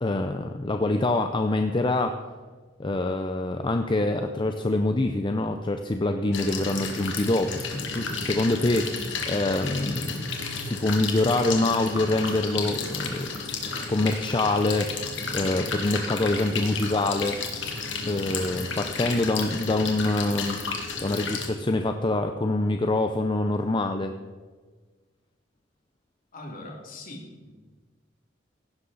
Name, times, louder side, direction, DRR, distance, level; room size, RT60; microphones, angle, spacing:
voice 1, 0.0-2.1 2.8-10.3 10.6-13.3 13.9-17.4 18.1-20.6 21.0-24.1, left 2 dB, 25° left, 6 dB, 0.6 m, -25 dB
sound 1, 6.3-21.5, left 4 dB, 75° left, 2.1 m, -32 dB
voice 2, 26.3-27.5, left 2 dB, 50° left, 1 dB, 2.6 m, -41 dB
16.0 x 11.5 x 4.0 m, 1.4 s
head